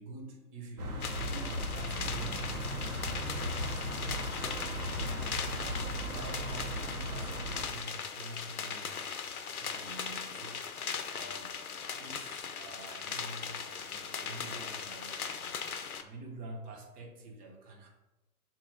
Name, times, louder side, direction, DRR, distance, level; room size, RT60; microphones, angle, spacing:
voice 1, 0.0-3.9 4.4-9.1 9.6-10.6 11.1-11.6 11.9-17.9, right 2 dB, 20° right, 1 dB, 1.0 m, -47 dB
sound 1, 0.8-7.7, equal, 80° right, 1.3 m, -37 dB
sound 2, 1.0-16.0, left 6 dB, 75° left, 0.8 m, -39 dB
6.9 x 3.0 x 5.0 m, 1.0 s
figure-of-eight pair, 125°, 45 cm